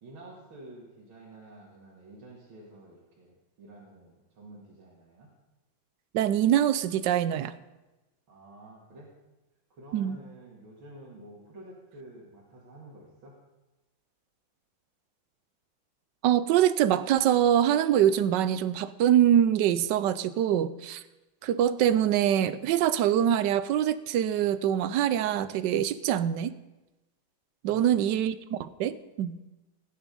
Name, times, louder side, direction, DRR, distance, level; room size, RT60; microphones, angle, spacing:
voice 1, 0.0-5.3 8.3-9.1 9.7-13.3 27.7-28.1, right 1 dB, 90° right, -5 dB, 2.9 m, -49 dB
voice 2, 6.1-7.5 9.9-10.2 16.2-21.0 21.4-26.6 27.6-29.4, right 10 dB, 70° right, 15 dB, 1.2 m, -24 dB
17.0 x 9.5 x 5.3 m, 1.1 s
omnidirectional pair, 2.1 m